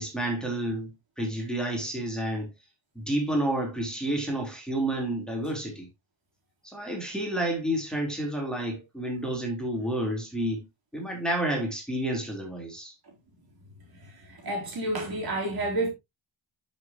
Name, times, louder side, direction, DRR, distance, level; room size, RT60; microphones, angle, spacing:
voice 1, 0.0-2.5 3.0-5.9 6.6-10.7 10.9-12.9, right 1 dB, ahead, 3.9 m, -30 dB
voice 2, 14.0-15.9, right 1 dB, 50° right, 4.0 m, -30 dB
10.5 x 6.8 x 3.0 m
cardioid pair, 100°, 47 cm